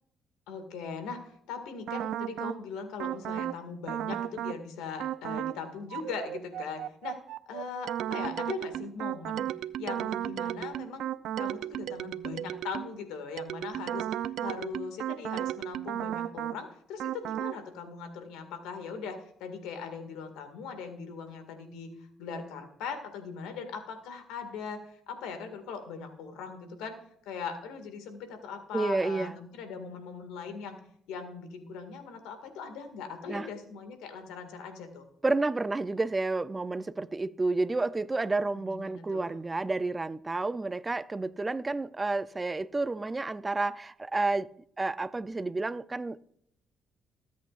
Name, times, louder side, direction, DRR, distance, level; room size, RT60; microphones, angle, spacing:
voice 1, 0.5-7.2 7.5-9.5 9.8-11.1 11.4-14.1 14.4-21.9 22.2-27.0 27.3-30.8 31.1-35.1 38.5-39.4, left 5 dB, 90° left, 2.0 m, -40 dB
sound 1, 1.9-2.6 3.0-3.6 3.9-4.6 5.0-5.6 5.9-13.0 13.4-16.6 17.0-17.6, right 11 dB, 75° right, 0.4 m, -34 dB
voice 2, 28.7-29.3 33.3-33.5 35.2-44.5 44.8-46.2, right 3 dB, 25° right, 0.5 m, -30 dB
20.5 x 8.5 x 2.5 m
supercardioid pair, 75°, 0 cm